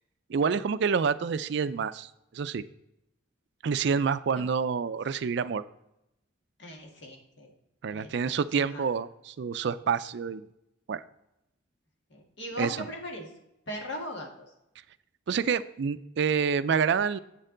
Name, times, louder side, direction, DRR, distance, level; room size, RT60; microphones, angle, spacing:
voice 1, 0.3-2.6 3.6-5.6 7.8-10.5 10.9-11.0 12.6-12.8 15.3-17.2, right 6 dB, 60° right, 14 dB, 0.4 m, -28 dB
voice 2, 6.6-7.5 7.9-8.9 12.1-13.3 13.7-14.3, left 1 dB, 60° left, 1 dB, 1.7 m, -39 dB
8.1 x 6.6 x 3.8 m, 0.86 s
head